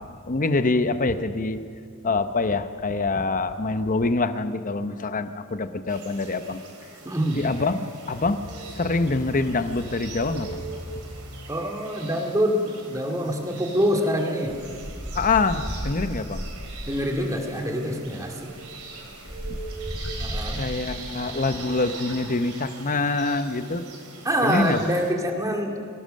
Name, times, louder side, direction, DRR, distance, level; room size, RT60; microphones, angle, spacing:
voice 1, 0.0-1.6 2.0-6.6 7.4-8.5 8.7-10.7 11.3-11.5 15.1-16.4 20.6-23.8 24.4-24.9, left 3 dB, 35° left, 10 dB, 0.8 m, -25 dB
sound 1, 5.9-25.1, right 4 dB, 80° right, 3.9 m, -41 dB
voice 2, 7.0-7.5 11.5-14.6 16.9-18.5 20.2-20.6 24.2-25.8, equal, 15° right, 1 dB, 2.2 m, -25 dB
sound 2, 14.4-17.0 18.0-18.1 18.4-21.0, equal, 10° left, 4.5 m, -34 dB
24.5 x 17.5 x 6.5 m, 2.3 s
head